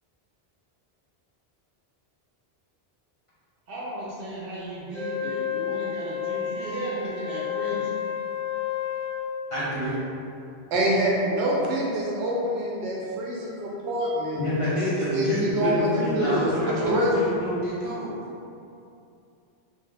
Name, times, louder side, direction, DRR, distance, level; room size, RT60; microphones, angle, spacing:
voice 1, 3.7-8.0, right 1 dB, 65° right, -7 dB, 0.9 m, -35 dB
Wind instrument woodwind instrument, 4.9-9.3, left 9 dB, 15° right, 0.5 m, -30 dB
voice 2, 9.5-9.9 14.3-18.2, left 1 dB, 35° left, -11 dB, 0.7 m, -27 dB
voice 3, 10.7-14.4 15.1-17.1, right 1 dB, 85° right, -4 dB, 0.9 m, -26 dB
3.0 x 2.1 x 3.3 m, 2.6 s
omnidirectional pair, 1.1 m